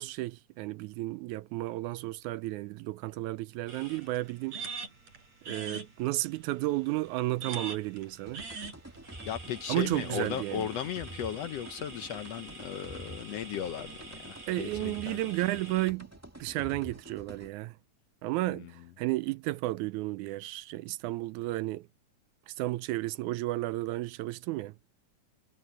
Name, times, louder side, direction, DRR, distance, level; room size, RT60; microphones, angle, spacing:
voice 1, 0.0-4.6 5.5-8.4 9.7-10.7 14.5-16.1 16.4-17.8 18.2-21.9 22.5-24.8, right 18 dB, 80° right, 1.9 m, -33 dB
sound 1, 3.7-15.9, right 4 dB, 60° right, 5.3 m, -45 dB
sound 2, 8.2-17.5, right 1 dB, 10° right, 0.8 m, -48 dB
voice 2, 9.3-15.2 18.5-18.7, left 10 dB, 70° left, 1.6 m, -36 dB
omnidirectional pair, 3.6 m